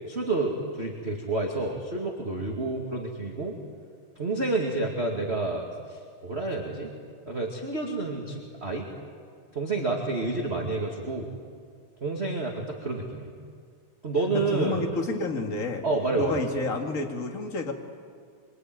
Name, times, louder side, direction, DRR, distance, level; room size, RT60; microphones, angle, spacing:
voice 1, 0.1-3.5 4.2-6.9 7.3-8.9 9.5-11.3 12.0-13.3 14.0-14.8 15.8-16.5, right 3 dB, 25° right, 0 dB, 2.1 m, -29 dB
voice 2, 14.3-15.8 16.2-17.7, left 2 dB, 30° left, 3 dB, 2.1 m, -30 dB
25.5 x 24.0 x 9.4 m, 2.1 s
omnidirectional pair, 3.5 m